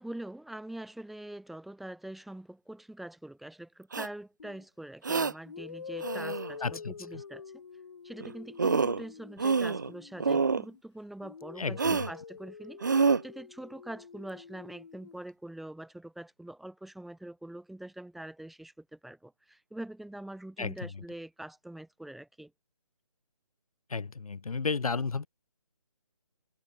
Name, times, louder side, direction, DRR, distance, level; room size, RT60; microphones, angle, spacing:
voice 1, 0.0-7.4 8.0-22.5, right 1 dB, ahead, 1.4 m, -44 dB
sound 1, 3.9-4.1 5.0-5.3 6.0-6.5 8.2-8.3 8.6-9.0 9.4-9.9 10.2-10.6 11.8-12.1 12.8-13.2, right 5 dB, 35° right, 0.4 m, -27 dB
sound 2, 4.4-4.6 5.4-10.8 11.2-15.2, left 5 dB, 50° left, 1.5 m, -46 dB
voice 2, 6.6-6.9 11.6-12.0 20.6-20.9 23.9-25.3, left 4 dB, 85° left, 1.2 m, -33 dB
hypercardioid pair, 170°, 18 cm